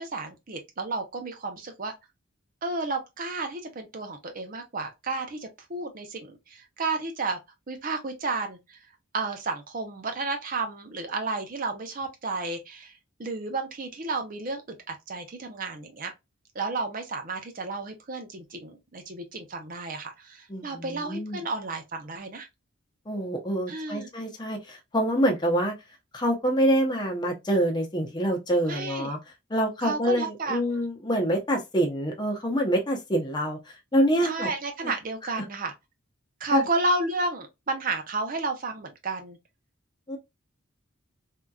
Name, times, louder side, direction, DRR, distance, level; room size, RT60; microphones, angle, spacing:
voice 1, 0.0-1.9 2.6-7.4 7.7-8.8 9.1-12.9 13.2-16.1 16.5-22.5 23.7-24.1 28.6-29.1 29.8-30.8 34.2-35.7 36.4-39.4, right 3 dB, 40° right, 0.6 m, -32 dB
voice 2, 20.5-21.4 23.1-25.7 26.1-29.2 29.5-33.6 33.9-34.5 36.5-36.6 40.1-40.2, equal, 20° left, 0.7 m, -26 dB
3.5 x 2.8 x 2.3 m
head